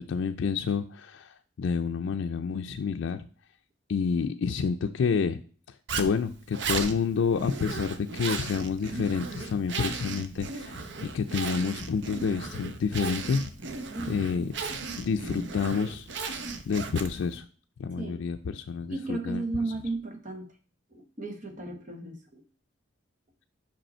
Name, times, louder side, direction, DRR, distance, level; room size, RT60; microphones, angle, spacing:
voice 1, 0.0-3.3 3.9-5.4 5.9-13.5 14.1-16.1 16.7-17.4 17.8-19.4, left 5 dB, 85° left, 6 dB, 0.4 m, -29 dB
Zipper (clothing), 5.9-17.4, right 4 dB, 65° right, 0.7 m, -36 dB
voice 2, 13.9-14.5 18.0-18.2 18.9-20.5 20.9-22.4, right 2 dB, 40° right, 5 dB, 1.1 m, -35 dB
5.5 x 5.2 x 4.3 m, 0.40 s
head